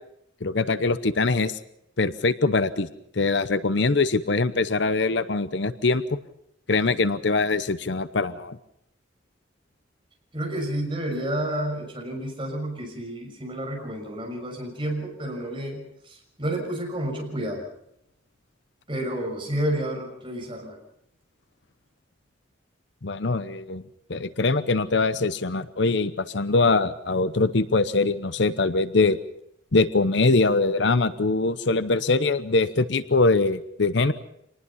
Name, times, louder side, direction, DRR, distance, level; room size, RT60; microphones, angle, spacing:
voice 1, 0.4-1.6 2.0-2.9 3.1-6.0 6.7-8.6 23.0-23.8 24.1-29.2 29.7-34.1, left 3 dB, 65° left, 13 dB, 0.8 m, -23 dB
voice 2, 10.3-17.6 18.9-20.8, right 1 dB, 25° right, 1 dB, 6.1 m, -30 dB
26.0 x 19.5 x 5.6 m, 0.74 s
head